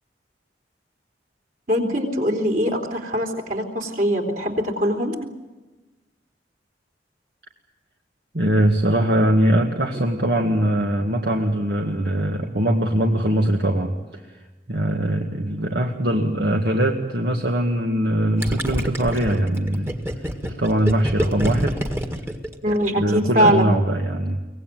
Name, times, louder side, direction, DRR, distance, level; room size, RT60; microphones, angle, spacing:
voice 1, 1.7-5.2 22.6-23.7, equal, 50° right, 3 dB, 3.9 m, -22 dB
voice 2, 8.3-14.4 14.7-20.0 20.4-21.8 23.0-24.4, right 1 dB, 65° right, 1 dB, 1.9 m, -21 dB
Gurgling, 18.4-23.1, equal, 15° right, 1.8 m, -27 dB
24.0 x 18.5 x 9.3 m, 1.1 s
head